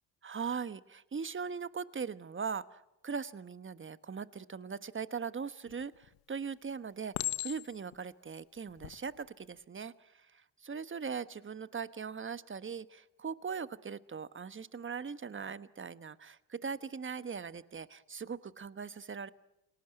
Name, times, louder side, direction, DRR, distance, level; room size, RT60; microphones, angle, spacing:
voice 1, 0.2-19.3, right 6 dB, 25° right, 14 dB, 1.3 m, -40 dB
Chink clink, 5.7-6.2 7.1-7.9 8.7-9.0, left 19 dB, 85° left, 1.3 m, -37 dB
29.5 x 19.0 x 9.1 m, 0.90 s
supercardioid pair, 65°, 44 cm